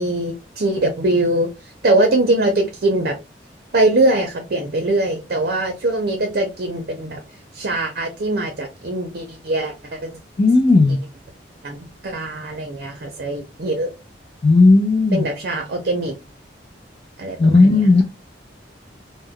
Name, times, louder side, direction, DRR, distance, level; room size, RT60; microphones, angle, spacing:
voice 1, 0.0-1.5 1.8-3.2 3.7-7.2 7.5-10.1 11.6-11.8 12.0-13.9 15.1-16.2 17.2-17.8, right 2 dB, 55° right, 3 dB, 0.6 m, -21 dB
voice 2, 10.4-11.0 14.4-15.3 17.4-18.0, left 3 dB, 35° left, 0 dB, 0.4 m, -13 dB
2.2 x 2.1 x 3.5 m, 0.26 s
head